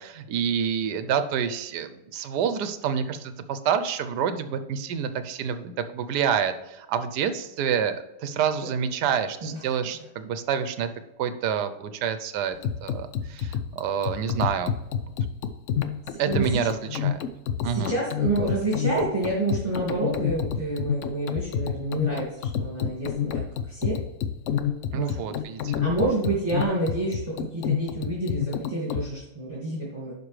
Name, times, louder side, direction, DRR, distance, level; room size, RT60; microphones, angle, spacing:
voice 1, 0.0-10.9 11.2-14.7 16.2-17.2 17.6-18.0 24.9-25.7, right 7 dB, 80° right, 11 dB, 1.3 m, -28 dB
voice 2, 9.4-9.8 16.1-16.6 17.6-24.0 24.9-25.2 25.8-30.1, right 2 dB, 20° right, -7 dB, 2.0 m, -28 dB
sound 1, 12.6-29.1, left 8 dB, 65° left, 0.8 m, -29 dB
11.0 x 5.0 x 3.2 m, 0.99 s
omnidirectional pair, 1.8 m